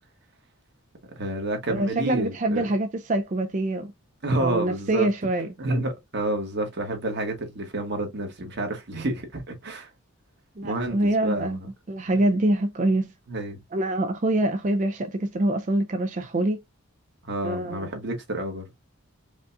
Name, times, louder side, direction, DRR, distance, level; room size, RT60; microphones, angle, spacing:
voice 1, 1.1-2.7 4.2-5.1 5.6-9.9 10.6-11.6 13.3-13.6 17.3-18.6, right 1 dB, 50° right, 1.4 m, -29 dB
voice 2, 1.7-3.9 4.4-5.5 10.6-11.6 11.9-13.1 13.7-16.6 17.4-17.9, right 1 dB, 35° right, 0.4 m, -25 dB
5.1 x 2.4 x 2.6 m
head